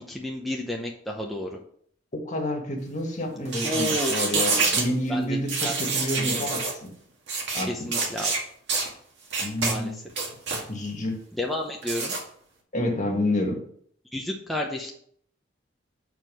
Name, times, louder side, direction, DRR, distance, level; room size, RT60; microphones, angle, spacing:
voice 1, 0.0-1.5 3.6-4.1 5.1-5.4 5.6-5.7 6.2-6.5 7.6-8.3 9.6-10.0 11.4-12.1 14.1-14.9, left 1 dB, ahead, -2 dB, 0.8 m, -31 dB
voice 2, 2.1-6.9 7.5-7.7 9.4-10.0 10.7-11.2 12.7-13.6, left 1 dB, 40° left, 1 dB, 1.8 m, -29 dB
sound 1, 3.5-4.9 5.5-6.7 7.3-7.6 7.9-8.4 8.7-8.9 9.3-9.7 10.1-10.6 11.8-12.2, right 4 dB, 65° right, 2.1 m, -26 dB
7.3 x 4.6 x 6.2 m, 0.62 s
head